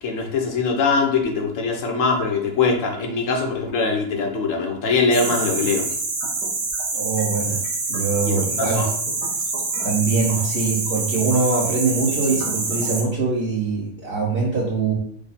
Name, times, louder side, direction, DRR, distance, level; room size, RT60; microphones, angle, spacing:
voice 1, 0.0-5.9 8.2-8.9, left 4 dB, 60° left, 2 dB, 1.1 m, -22 dB
sound 1, 5.1-13.0, right 3 dB, 90° right, 1.6 m, -26 dB
voice 2, 6.9-7.6 7.9-8.8 9.8-14.9, right 4 dB, 40° right, -8 dB, 1.2 m, -23 dB
5.0 x 2.3 x 4.1 m, 0.65 s
omnidirectional pair, 1.8 m